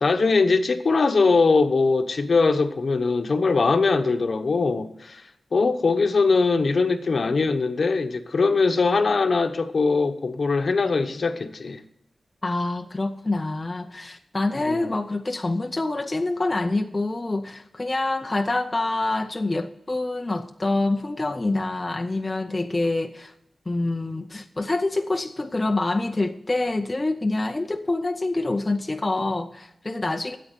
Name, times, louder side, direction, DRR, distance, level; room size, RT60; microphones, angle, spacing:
voice 1, 0.0-5.2 5.5-11.8 14.6-14.9, left 4 dB, 55° left, 8 dB, 1.0 m, -21 dB
voice 2, 12.4-23.3 23.7-30.4, left 2 dB, 20° left, 4 dB, 0.7 m, -26 dB
13.0 x 8.4 x 6.8 m, 0.80 s
wide cardioid pair, 130°, 0 cm